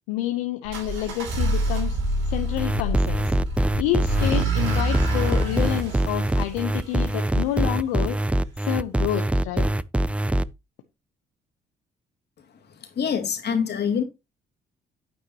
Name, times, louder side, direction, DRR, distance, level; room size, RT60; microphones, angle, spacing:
voice 1, 0.1-2.0 2.3-3.3 3.8-8.2 8.6-9.7, left 12 dB, 90° left, 0.9 m, -28 dB
sound 1, 0.6-7.5, right 1 dB, 80° right, 3.1 m, -27 dB
sound 2, 2.6-10.4, right 1 dB, 5° right, 0.5 m, -23 dB
voice 2, 12.7-14.0, left 7 dB, 60° left, 2.6 m, -25 dB
9.1 x 9.0 x 3.0 m
hypercardioid pair, 55°, 19 cm